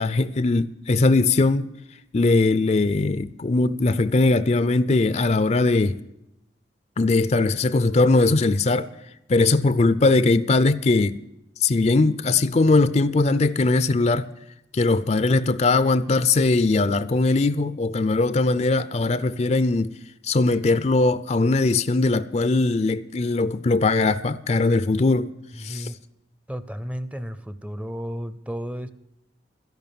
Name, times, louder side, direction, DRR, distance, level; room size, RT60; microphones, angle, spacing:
voice 1, 0.0-1.7 2.1-6.0 7.0-8.9 9.3-11.2 11.6-14.3 14.7-19.9 20.2-25.3 25.6-25.9, left 3 dB, 40° left, 0.5 m, -20 dB
voice 2, 25.5-26.0 26.5-28.9, equal, 5° right, 0.6 m, -33 dB
13.0 x 11.0 x 7.0 m
head